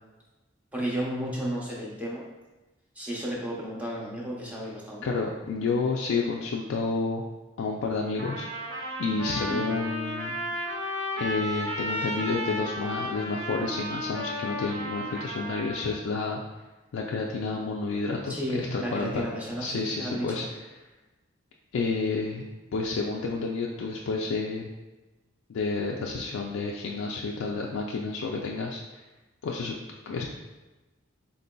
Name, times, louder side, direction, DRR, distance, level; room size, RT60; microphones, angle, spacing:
voice 1, 0.7-2.2 3.0-5.1 9.5-9.6 18.3-20.4, right 1 dB, 5° right, -4 dB, 0.6 m, -33 dB
voice 2, 5.0-7.2 7.6-10.4 11.2-16.4 16.9-19.3 19.6-20.5 21.7-22.4 22.7-24.7 25.5-29.0 29.4-29.7 30.1-30.3, left 4 dB, 90° left, -1 dB, 0.3 m, -30 dB
Trumpet, 8.2-15.9, equal, 60° right, 0.6 m, -34 dB
3.8 x 3.7 x 2.2 m, 1.1 s
head